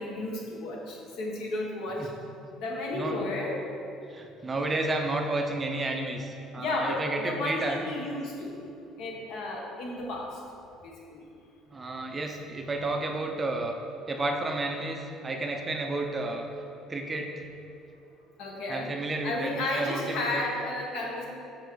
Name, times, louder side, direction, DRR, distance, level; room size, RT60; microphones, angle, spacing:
voice 1, 0.0-2.1 2.6-3.6 6.6-8.6 9.0-10.4 10.8-11.2 18.4-18.9 19.2-21.3, left 2 dB, 70° left, -2 dB, 1.3 m, -33 dB
voice 2, 4.1-7.9 11.7-13.8 14.1-16.5 16.9-17.5 18.7-20.4, right 2 dB, 20° right, 3 dB, 0.5 m, -31 dB
6.8 x 4.4 x 4.7 m, 2.7 s
cardioid pair, 125°, 0 cm